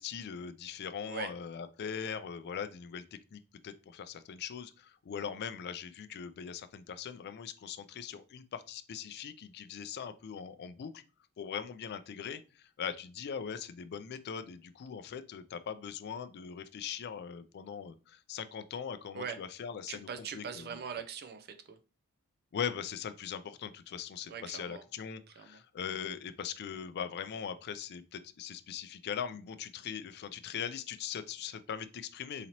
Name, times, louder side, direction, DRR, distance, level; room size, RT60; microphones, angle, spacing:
voice 1, 0.0-3.0 3.3-11.0 11.4-20.7 22.5-32.5, left 7 dB, 50° left, 11 dB, 0.3 m, -40 dB
voice 2, 19.9-21.8 24.3-24.8 25.4-25.6, right 6 dB, 45° right, 8 dB, 0.5 m, -41 dB
4.0 x 2.8 x 2.9 m, 0.33 s
head